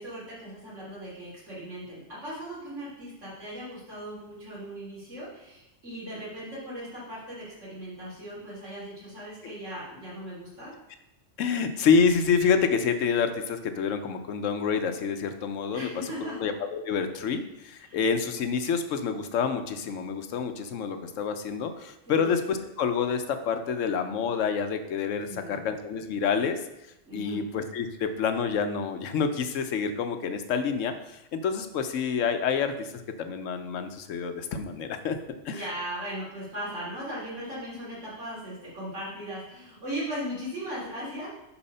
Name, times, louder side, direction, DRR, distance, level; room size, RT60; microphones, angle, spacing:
voice 1, 0.0-10.7 15.7-16.4 17.8-18.0 22.1-22.3 25.3-25.6 27.1-27.4 35.5-41.3, equal, 75° right, -8 dB, 3.8 m, -38 dB
voice 2, 11.4-26.6 27.1-35.2 35.4-35.6, left 6 dB, 85° left, 8 dB, 1.1 m, -28 dB
7.1 x 4.8 x 5.5 m, 0.89 s
omnidirectional pair, 1.3 m